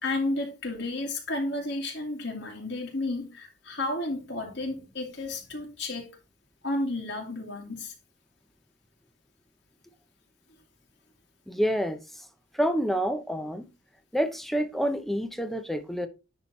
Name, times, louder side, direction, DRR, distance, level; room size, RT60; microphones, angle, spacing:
voice 1, 0.0-6.1 6.6-7.9, left 2 dB, 65° left, 2.2 m, -32 dB
voice 2, 11.5-12.3 12.5-13.7 14.1-16.1, equal, ahead, 0.8 m, -28 dB
10.5 x 3.8 x 4.3 m
head